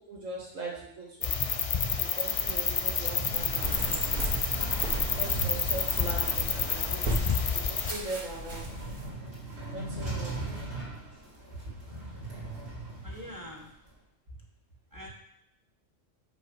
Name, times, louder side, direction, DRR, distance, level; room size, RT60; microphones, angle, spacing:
voice 1, 0.1-1.3 2.1-3.9 5.0-7.3 7.7-8.7 9.7-10.3, right 2 dB, 85° right, -4 dB, 2.5 m, -39 dB
sound 1, 1.2-7.9, left 6 dB, 60° left, 0.3 m, -29 dB
sound 2, 2.2-13.9, right 2 dB, 55° right, 2.3 m, -40 dB
sound 3, 3.3-9.1, right 1 dB, 35° right, 1.2 m, -37 dB
voice 2, 9.9-10.3 13.0-13.7 14.9-15.1, left 1 dB, 15° right, -1 dB, 1.2 m, -45 dB
5.4 x 4.7 x 6.4 m, 0.77 s
omnidirectional pair, 1.3 m